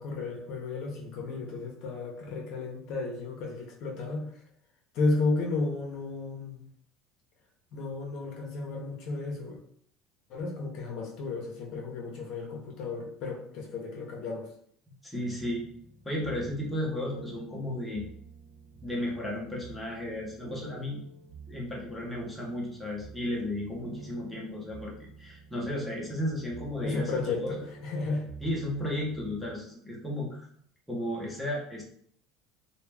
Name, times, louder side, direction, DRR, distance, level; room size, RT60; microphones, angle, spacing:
voice 1, 0.0-4.3 4.9-6.6 7.7-9.6 10.3-14.5 26.8-28.2, left 3 dB, 60° left, 0 dB, 0.6 m, -33 dB
voice 2, 15.0-15.7 16.0-18.1 18.8-21.0 21.5-27.6 28.4-30.5 30.9-31.8, left 1 dB, 5° left, -4 dB, 0.7 m, -34 dB
sound 1, 15.4-29.5, right 4 dB, 50° right, 0.6 m, -49 dB
2.3 x 2.1 x 3.2 m, 0.64 s
cardioid pair, 125°, 0 cm